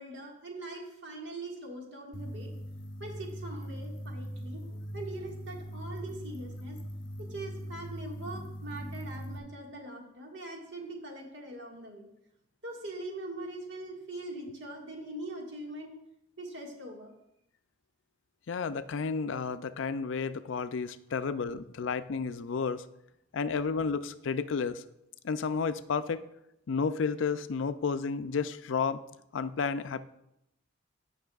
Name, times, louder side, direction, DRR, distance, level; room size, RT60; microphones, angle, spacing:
voice 1, 0.0-2.5 3.0-6.8 7.2-12.1 12.6-15.9 16.4-17.1, right 2 dB, 70° right, 0 dB, 1.8 m, -42 dB
sound 1, 2.1-9.4, equal, 45° left, 1.3 m, -40 dB
voice 2, 18.5-22.8 23.3-24.8 25.2-26.3 26.7-29.0 29.3-30.1, left 5 dB, 70° left, 12 dB, 0.4 m, -31 dB
15.5 x 6.0 x 2.4 m, 0.82 s
head